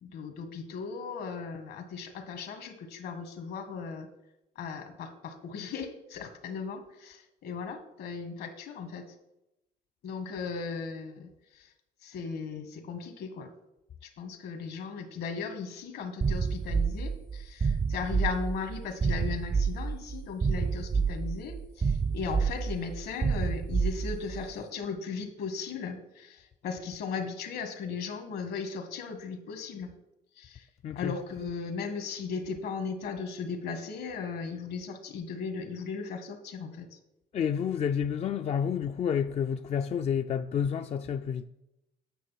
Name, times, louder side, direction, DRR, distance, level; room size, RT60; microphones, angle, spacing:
voice 1, 0.0-4.1 4.6-9.1 10.0-11.7 12.0-13.5 14.0-29.9 30.4-30.7 31.0-36.9, left 5 dB, 70° left, 1.6 m, -37 dB
sound 1, 16.2-24.5, right 5 dB, 25° right, 0.4 m, -29 dB
voice 2, 30.8-31.2 37.3-41.5, left 7 dB, 40° left, 0.4 m, -29 dB
9.3 x 6.6 x 5.8 m
cardioid pair, 110°, 17 cm